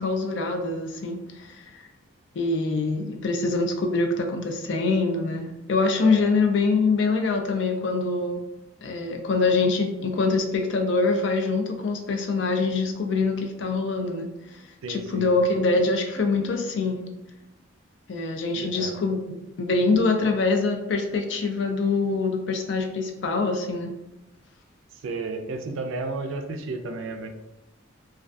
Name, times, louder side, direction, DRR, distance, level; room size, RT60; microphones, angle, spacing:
voice 1, 0.0-1.7 2.4-8.4 8.8-14.3 14.9-17.0 18.1-23.9, left 3 dB, 60° left, 4 dB, 0.4 m, -24 dB
voice 2, 14.8-15.3 18.5-18.9 25.0-27.3, right 3 dB, 75° right, 6 dB, 0.3 m, -32 dB
2.3 x 2.2 x 2.5 m, 0.92 s
head